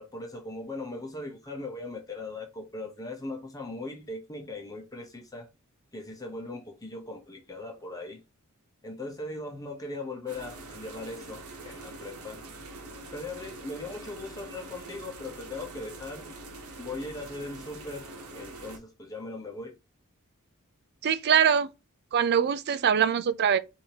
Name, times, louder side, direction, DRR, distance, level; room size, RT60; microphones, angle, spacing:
voice 1, 0.0-5.5 5.9-8.2 8.8-12.4 13.1-16.3 16.8-18.1 18.3-19.7, left 2 dB, 15° left, 0.9 m, -39 dB
sound 1, 10.3-18.8, right 2 dB, 85° right, 1.0 m, -44 dB
voice 2, 21.0-21.7 22.1-23.6, right 7 dB, 50° right, 0.4 m, -23 dB
4.9 x 2.7 x 2.8 m
head